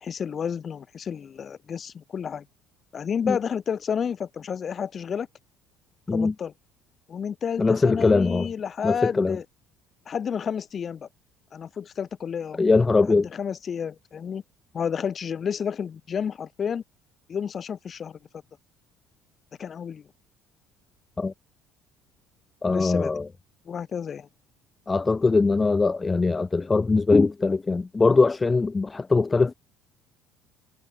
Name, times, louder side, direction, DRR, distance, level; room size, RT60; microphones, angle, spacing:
voice 1, 0.0-2.4 2.9-5.3 6.1-6.5 7.1-9.4 10.1-11.1 11.5-12.6 13.1-14.4 14.7-16.8 17.3-18.2 19.6-20.0 22.7-23.1 23.7-24.3, left 7 dB, 40° left, 2.0 m, -31 dB
voice 2, 7.6-8.5 8.8-9.4 12.6-13.3 21.2-21.3 22.6-23.3 24.9-29.5, left 3 dB, 20° left, 0.3 m, -21 dB
supercardioid pair, 100°, 0 cm